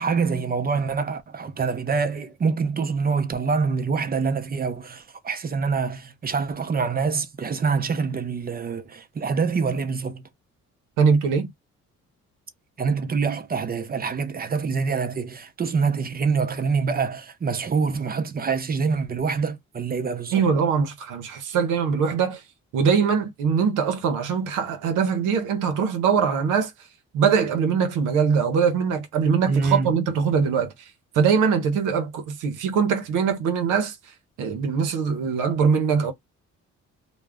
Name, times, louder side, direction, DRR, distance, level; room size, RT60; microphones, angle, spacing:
voice 1, 0.0-10.2 12.8-20.3 29.5-29.9, right 5 dB, 30° right, 0.5 m, -25 dB
voice 2, 11.0-11.5 20.3-22.4 22.7-26.7 27.1-30.7 31.1-34.0 34.4-36.1, right 6 dB, 85° right, 0.6 m, -22 dB
2.3 x 2.0 x 3.4 m
cardioid pair, 90°, 30 cm